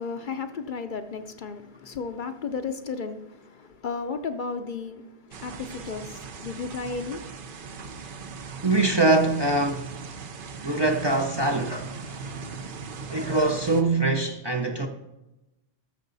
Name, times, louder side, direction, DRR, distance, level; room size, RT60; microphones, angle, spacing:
voice 1, 0.0-7.4, left 5 dB, 55° left, 0.7 m, -34 dB
sound 1, 5.3-13.8, right 5 dB, 55° right, 0.9 m, -39 dB
voice 2, 8.6-10.0 10.6-12.7 13.1-14.9, right 2 dB, 30° right, 0.6 m, -24 dB
13.5 x 6.5 x 4.0 m
omnidirectional pair, 1.1 m